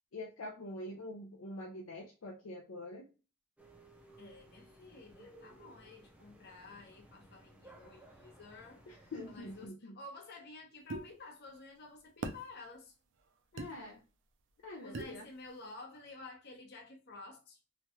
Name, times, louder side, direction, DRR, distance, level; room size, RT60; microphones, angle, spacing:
voice 1, 0.1-3.0 8.9-9.9 13.5-14.0 14.6-15.2, left 1 dB, 70° left, 0.5 m, -45 dB
sound 1, 3.6-9.7, right 1 dB, 5° right, 0.5 m, -58 dB
voice 2, 4.2-8.8 9.3-12.9 14.8-17.6, left 3 dB, 50° left, 0.8 m, -51 dB
sound 2, 10.9-11.1 12.2-12.4 13.6-13.7 14.9-15.2, right 2 dB, 60° right, 0.4 m, -39 dB
3.0 x 2.2 x 2.9 m
head